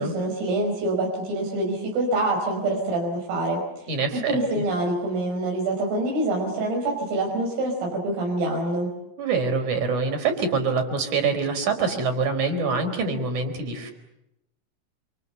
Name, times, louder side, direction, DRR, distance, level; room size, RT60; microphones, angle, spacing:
voice 1, 0.0-8.9, right 2 dB, 75° right, 0 dB, 7.8 m, -26 dB
voice 2, 3.9-4.6 9.2-13.9, right 4 dB, 40° right, 6 dB, 5.4 m, -25 dB
29.0 x 28.0 x 6.9 m, 0.88 s
omnidirectional pair, 5.9 m